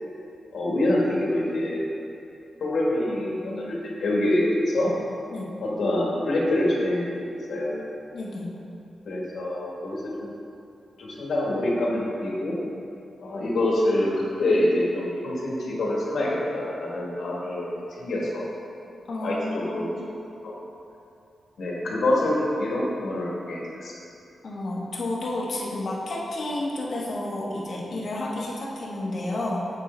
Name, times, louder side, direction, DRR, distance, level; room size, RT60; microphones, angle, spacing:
voice 1, 0.5-1.9 2.6-4.9 5.6-7.8 9.0-10.3 11.0-12.6 13.2-18.5 19.2-19.9 20.4-20.5 21.6-23.9, left 1 dB, 70° left, -4 dB, 1.5 m, -26 dB
voice 2, 8.1-8.5 19.1-19.9 24.4-29.7, left 1 dB, 55° left, -4 dB, 1.1 m, -31 dB
7.3 x 4.5 x 4.3 m, 2.6 s
wide cardioid pair, 110°, 0 cm